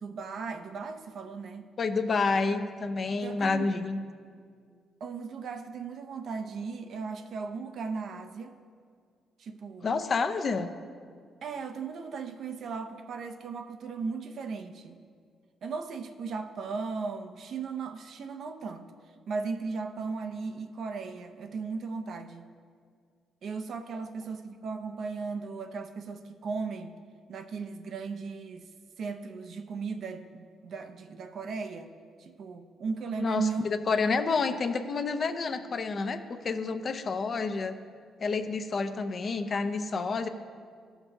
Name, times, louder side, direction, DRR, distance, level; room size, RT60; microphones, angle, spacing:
voice 1, 0.0-1.7 3.2-3.7 5.0-8.5 9.4-9.9 11.4-15.0 15.6-18.9 19.3-22.4 23.4-26.9 27.3-28.7 29.0-31.9 32.2-33.7, right 4 dB, 60° right, 7 dB, 0.5 m, -36 dB
voice 2, 1.8-4.0 9.8-10.7 33.2-37.8 38.2-40.3, left 4 dB, 45° left, 8 dB, 0.5 m, -29 dB
14.0 x 5.9 x 2.7 m, 2.1 s
cardioid pair, 90°, 0 cm